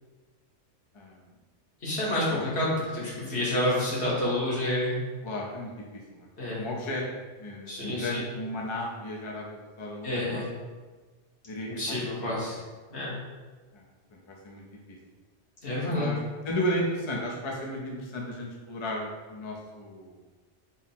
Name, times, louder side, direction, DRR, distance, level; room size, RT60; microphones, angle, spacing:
voice 1, 0.9-1.3 2.3-2.5 5.2-6.3 6.5-7.0 7.4-10.5 11.5-12.5 13.7-13.9 14.1-15.0 15.8-16.2 16.4-20.2, left 1 dB, 40° left, -2 dB, 0.4 m, -34 dB
voice 2, 1.8-4.9 6.4-6.7 7.7-8.2 10.0-10.5 11.7-12.6 12.9-13.1 15.6-16.1, left 1 dB, 65° left, -7 dB, 1.5 m, -29 dB
3.8 x 2.0 x 4.2 m, 1.3 s
omnidirectional pair, 1.2 m